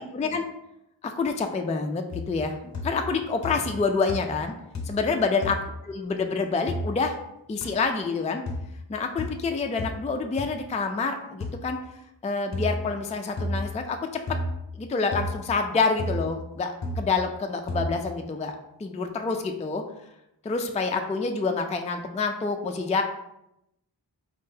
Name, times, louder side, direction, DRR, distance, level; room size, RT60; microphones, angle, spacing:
voice 1, 0.1-0.4 1.0-2.6 2.8-4.5 4.8-5.6 5.9-7.2 7.5-8.4 8.9-11.8 12.2-14.2 14.7-19.8 20.4-23.0, left 4 dB, 15° left, 5 dB, 0.3 m, -27 dB
sound 1, 2.1-2.5 2.7-3.2 3.4-3.8 4.1-4.5 4.7-5.1 5.4-5.6 6.7-6.9 7.6-7.7 8.5-8.7 9.2-9.4 9.8-10.0 10.4-10.5 11.4-11.6 12.5-12.8 13.4-13.7 14.3-14.6 15.1-15.3 16.0-16.3 16.8-17.1 17.7-17.9, left 1 dB, 40° left, 0.7 m, -31 dB
4.3 x 3.6 x 2.8 m, 0.83 s
wide cardioid pair, 70°, 44 cm